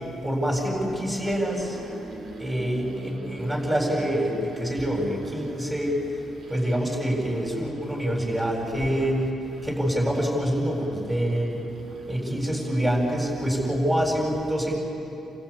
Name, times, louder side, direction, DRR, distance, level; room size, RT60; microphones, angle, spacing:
voice 1, 0.2-1.8 2.4-6.0 6.5-9.2 9.6-11.6 12.1-14.8, equal, 15° right, -1 dB, 7.9 m, -26 dB
sound 1, 1.2-13.4, right 2 dB, 60° right, 3.2 m, -44 dB
30.0 x 16.0 x 8.9 m, 2.9 s
cardioid pair, 90°, 0 cm